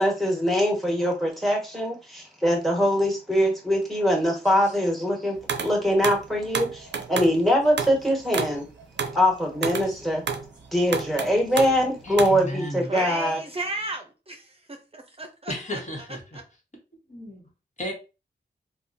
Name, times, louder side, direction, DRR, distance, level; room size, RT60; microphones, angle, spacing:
voice 1, 0.0-5.4 5.6-8.6 9.1-10.2 10.7-13.4, equal, ahead, 1.4 m, -23 dB
sound 1, 5.5-5.7 6.0-7.4 7.8-8.0 8.3-10.5 10.9-11.9 12.2-12.5, right 6 dB, 85° right, 0.4 m, -30 dB
voice 2, 12.0-12.9 15.5-16.4 17.1-17.5 17.8-17.9, equal, 40° left, 1.3 m, -33 dB
voice 3, 12.9-15.8 16.3-16.4, right 2 dB, 35° right, 0.6 m, -34 dB
3.5 x 2.3 x 2.6 m
cardioid pair, 50°, 18 cm